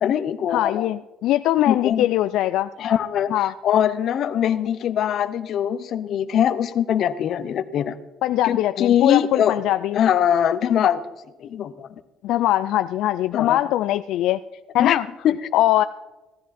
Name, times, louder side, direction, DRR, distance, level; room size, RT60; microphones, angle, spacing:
voice 1, 0.0-0.9 1.7-2.1 2.8-3.3 3.6-8.0 8.4-9.6 9.9-11.0 11.4-11.9 13.3-13.6 14.8-15.0 15.2-15.4, left 9 dB, 45° left, 13 dB, 0.7 m, -22 dB
voice 2, 0.5-2.7 3.3-3.5 8.2-10.0 12.2-14.4 14.7-15.1 15.5-15.8, left 14 dB, 70° left, 11 dB, 0.3 m, -21 dB
16.0 x 13.0 x 4.2 m, 1.1 s
cardioid pair, 170°, 0 cm